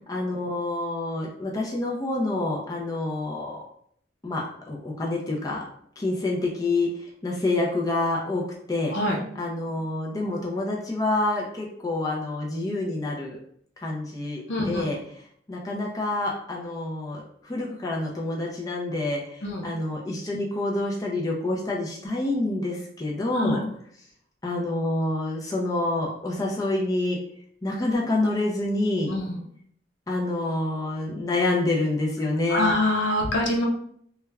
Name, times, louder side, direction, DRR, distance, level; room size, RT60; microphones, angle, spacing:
voice 1, 0.1-3.6 4.2-5.7 6.0-8.9 9.4-13.4 13.8-15.0 15.5-23.6 24.4-27.2 27.6-29.2 30.1-32.8, left 2 dB, 20° left, -2 dB, 0.4 m, -27 dB
voice 2, 14.5-14.9 19.4-19.7 23.3-23.6 29.1-29.4 32.5-33.6, left 1 dB, 85° left, 1 dB, 0.6 m, -25 dB
2.3 x 2.1 x 3.2 m, 0.66 s
head